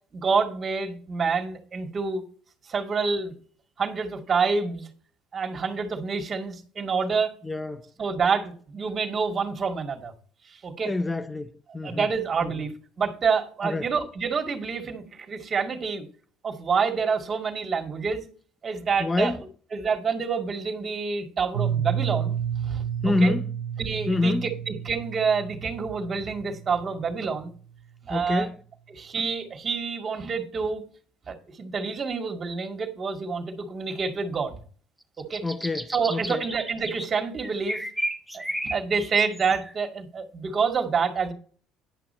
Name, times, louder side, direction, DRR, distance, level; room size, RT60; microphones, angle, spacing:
voice 1, 0.1-2.2 2.7-3.3 3.8-4.9 5.3-7.3 8.0-10.1 10.5-10.9 11.8-12.7 13.0-16.1 16.4-18.2 18.6-19.4 19.7-22.8 23.2-23.3 23.8-27.5 28.0-28.5 28.9-30.8 31.3-34.6 35.2-35.4 35.9-37.8 38.3-41.3, right 5 dB, 40° right, 2.1 m, -27 dB
voice 2, 7.4-7.8 10.9-12.1 12.4-12.5 13.6-13.9 19.0-19.4 23.0-23.4 24.1-24.5 28.1-28.6 35.4-36.4, left 2 dB, 15° left, 0.5 m, -26 dB
Piano, 21.5-27.2, right 9 dB, 85° right, 0.7 m, -31 dB
sound 1, 35.0-37.1 37.4-39.7, right 1 dB, 5° right, 1.0 m, -33 dB
10.5 x 6.1 x 4.3 m
supercardioid pair, 80°, 0 cm